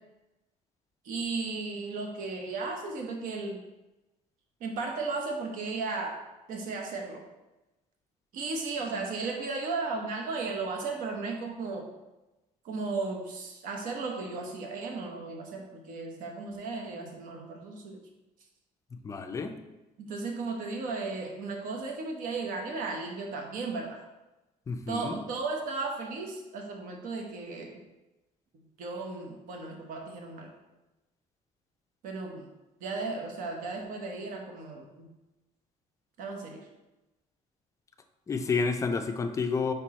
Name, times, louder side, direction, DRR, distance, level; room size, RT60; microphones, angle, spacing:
voice 1, 1.0-3.6 4.6-6.2 6.5-7.3 8.3-11.9 12.6-18.0 20.1-24.0 24.9-27.8 28.8-30.5 32.0-32.5 32.8-35.1 36.2-36.7, right 3 dB, 65° right, 2 dB, 1.0 m, -35 dB
voice 2, 19.0-19.5 24.7-25.2 38.3-39.7, left 4 dB, 20° left, 7 dB, 0.4 m, -30 dB
5.2 x 4.5 x 4.2 m, 1.0 s
cardioid pair, 170°, 15 cm